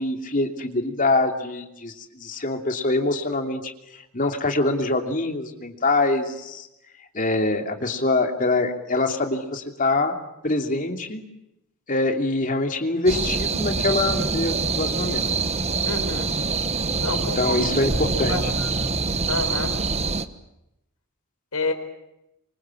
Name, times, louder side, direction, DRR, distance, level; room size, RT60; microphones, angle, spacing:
voice 1, 0.0-6.7 7.1-10.1 10.4-11.2 11.9-15.3 17.4-18.4, left 2 dB, 40° left, 5 dB, 3.0 m, -24 dB
sound 1, 13.1-20.3, right 4 dB, 30° right, 1.2 m, -25 dB
voice 2, 15.8-16.3 17.0-17.6 18.3-18.9 19.3-19.8 21.5-21.7, left 3 dB, 90° left, 6 dB, 4.5 m, -29 dB
27.5 x 25.0 x 7.5 m, 0.87 s
head